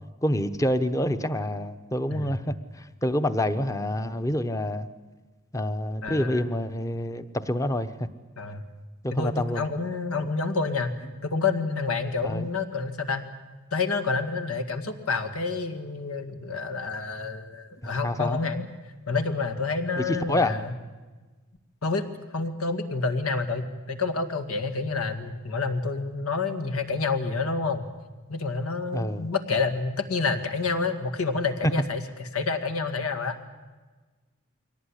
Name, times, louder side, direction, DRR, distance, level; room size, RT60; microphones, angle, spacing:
voice 1, 0.2-4.9 5.5-7.9 9.0-9.6 12.2-12.5 18.0-18.4 20.0-20.6 28.9-29.3, left 1 dB, 15° left, 11 dB, 0.9 m, -27 dB
voice 2, 6.0-6.5 8.4-8.6 9.1-13.2 13.7-18.6 19.1-20.7 21.8-22.0 22.3-27.9 28.3-33.4, left 4 dB, 90° left, 9 dB, 2.1 m, -28 dB
23.0 x 18.0 x 9.9 m, 1.3 s
head